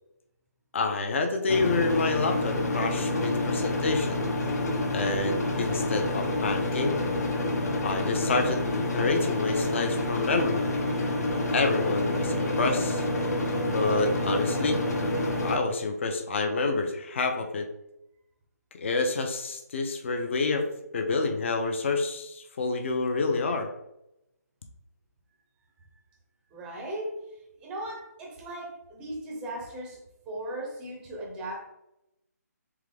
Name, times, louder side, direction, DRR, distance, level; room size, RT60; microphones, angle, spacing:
voice 1, 0.7-4.2 4.9-7.0 7.8-10.6 11.5-13.0 13.6-14.8 15.4-17.7 18.7-20.7 20.9-23.7, left 3 dB, 45° left, 5 dB, 0.6 m, -28 dB
sound 1, 1.5-15.6, left 1 dB, 70° left, 1.1 m, -28 dB
voice 2, 26.5-27.3 27.6-31.7, right 1 dB, 10° right, 0 dB, 0.6 m, -37 dB
3.7 x 3.6 x 3.3 m, 0.86 s
hypercardioid pair, 160°, 9 cm